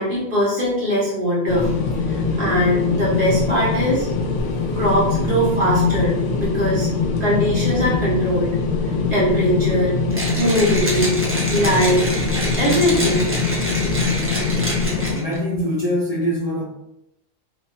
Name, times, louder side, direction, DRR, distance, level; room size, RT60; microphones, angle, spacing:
voice 1, 0.0-1.7 2.1-4.1 4.7-6.9 7.2-8.5 9.1-9.9 10.3-11.2 11.5-12.1 12.6-13.2, equal, 55° right, -6 dB, 1.5 m, -20 dB
sound 1, 1.5-15.2, left 4 dB, 85° left, 0.9 m, -22 dB
Mechanisms, 10.1-15.4, right 1 dB, 15° right, 0.6 m, -27 dB
voice 2, 15.1-16.6, equal, 45° left, -2 dB, 0.5 m, -23 dB
3.2 x 2.8 x 3.1 m, 0.84 s
omnidirectional pair, 1.1 m